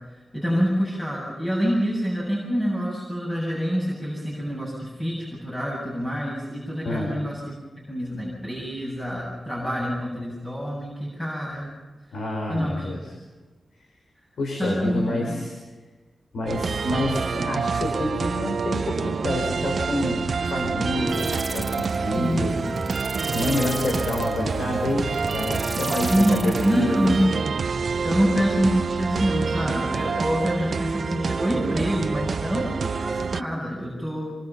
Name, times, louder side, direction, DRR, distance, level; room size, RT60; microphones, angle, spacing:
voice 1, 0.3-7.5 7.9-11.7 12.5-12.9 14.6-15.4 22.2-22.7 25.9-27.3 28.0-34.4, equal, 20° left, -5 dB, 7.5 m, -26 dB
voice 2, 12.1-13.0 14.4-15.5 16.3-22.9 23.3-27.0, left 1 dB, 90° left, 0 dB, 5.2 m, -28 dB
sound 1, 16.5-33.4, right 5 dB, 60° right, 0.7 m, -27 dB
sound 2, 21.1-27.4, right 1 dB, ahead, 1.5 m, -36 dB
26.0 x 24.5 x 5.7 m, 1.3 s
wide cardioid pair, 140°, 0 cm